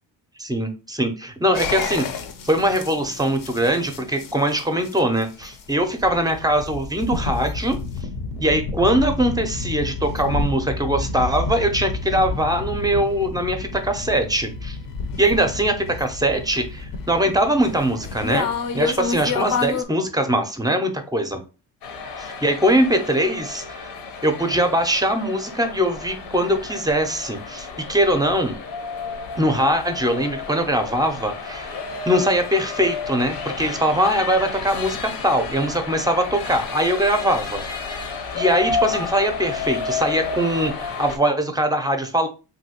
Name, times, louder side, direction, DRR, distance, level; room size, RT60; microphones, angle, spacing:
voice 1, 0.4-2.0 2.4-7.8 8.4-14.8 15.2-18.5 18.7-21.4 22.2-23.9 24.2-28.6 29.4-31.7 32.1-37.6 37.9-38.0 38.3-42.3, right 1 dB, 10° right, 6 dB, 0.5 m, -22 dB
sound 1, 1.5-19.8, left 4 dB, 55° left, 0.6 m, -30 dB
sound 2, 21.8-41.2, left 4 dB, 80° left, 0.9 m, -31 dB
3.0 x 2.7 x 2.8 m, 0.32 s
cardioid pair, 95°, 41 cm